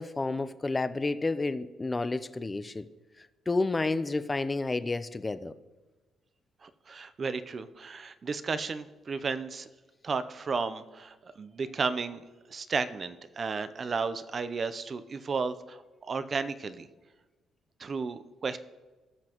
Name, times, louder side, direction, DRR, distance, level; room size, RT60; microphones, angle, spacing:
voice 1, 0.0-2.8 3.5-5.5, left 3 dB, 20° left, 0.5 m, -30 dB
voice 2, 6.6-9.7 10.0-12.2 12.5-16.9 17.8-18.6, right 4 dB, 40° right, 0.6 m, -33 dB
18.5 x 6.1 x 3.0 m
cardioid pair, 90°, 0 cm